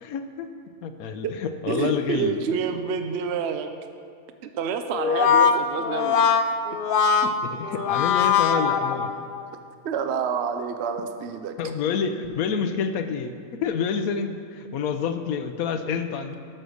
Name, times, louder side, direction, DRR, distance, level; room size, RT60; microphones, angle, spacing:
voice 1, 0.0-0.5 0.8-2.4 7.2-9.1 11.6-16.4, left 6 dB, 90° left, 8 dB, 1.1 m, -28 dB
voice 2, 1.7-3.7 4.5-6.2 9.8-11.5, right 6 dB, 60° right, 7 dB, 0.8 m, -28 dB
Brass instrument, 4.9-9.4, left 6 dB, 65° left, 0.5 m, -21 dB
12.0 x 6.7 x 6.3 m, 2.3 s
omnidirectional pair, 1.5 m